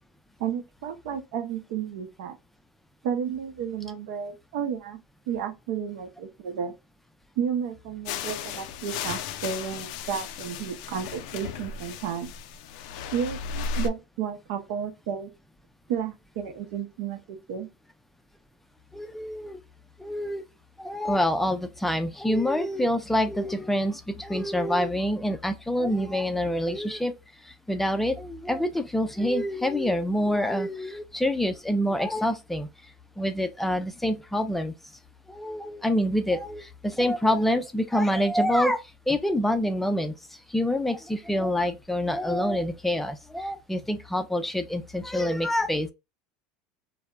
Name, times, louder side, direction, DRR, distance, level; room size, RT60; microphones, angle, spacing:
voice 1, 0.4-2.4 3.0-5.0 5.3-6.7 7.4-12.3 13.1-15.3 15.9-17.7, right 8 dB, 75° right, 0.6 m, -32 dB
sound 1, 8.0-13.9, left 6 dB, 75° left, 0.3 m, -35 dB
voice 2, 18.9-19.6 20.0-20.4 20.8-27.1 27.4-32.7 33.2-34.7 35.3-40.1 40.5-45.9, left 1 dB, 5° left, 0.4 m, -26 dB
3.2 x 2.0 x 2.2 m
supercardioid pair, 110°, 4 cm